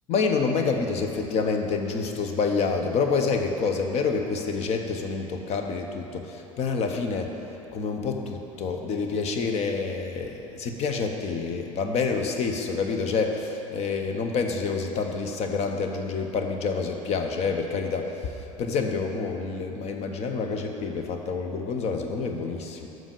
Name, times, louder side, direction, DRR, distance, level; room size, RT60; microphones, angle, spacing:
voice 1, 0.1-7.3 7.7-22.9, left 4 dB, 40° left, 4 dB, 0.9 m, -28 dB
7.4 x 6.1 x 6.9 m, 2.9 s
figure-of-eight pair, 70°, 18 cm